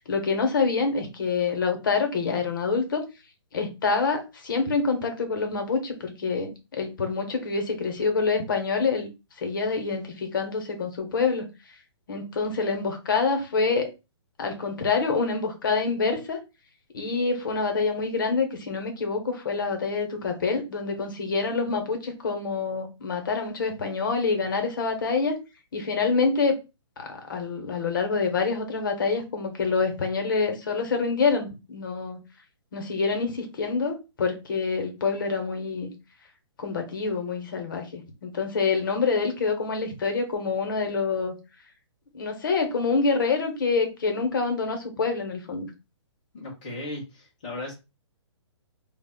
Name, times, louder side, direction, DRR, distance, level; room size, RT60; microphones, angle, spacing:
voice 1, 0.1-3.1 3.5-9.1 9.4-11.5 12.1-13.9 14.4-16.4 16.9-25.4 25.7-26.5 27.0-32.2 32.7-35.9 36.6-41.3 42.1-45.7, left 4 dB, 45° left, 5 dB, 0.7 m, -26 dB
voice 2, 46.3-47.7, left 2 dB, 15° left, -5 dB, 0.3 m, -36 dB
2.2 x 2.0 x 3.4 m, 0.27 s
hypercardioid pair, 175°, 15 cm